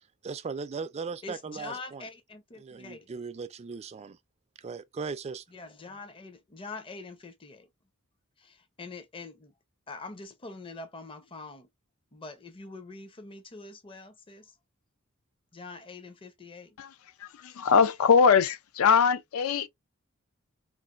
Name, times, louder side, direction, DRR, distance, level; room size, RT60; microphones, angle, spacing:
voice 1, 0.2-2.1 2.6-4.2 4.6-5.4, right 5 dB, 30° right, 0.3 m, -38 dB
voice 2, 1.2-3.1 5.5-7.7 8.4-9.5 9.9-11.7 12.1-14.5 15.5-16.8, left 3 dB, 25° left, 0.5 m, -44 dB
voice 3, 17.2-19.7, left 6 dB, 70° left, 0.4 m, -22 dB
3.9 x 2.4 x 2.3 m
head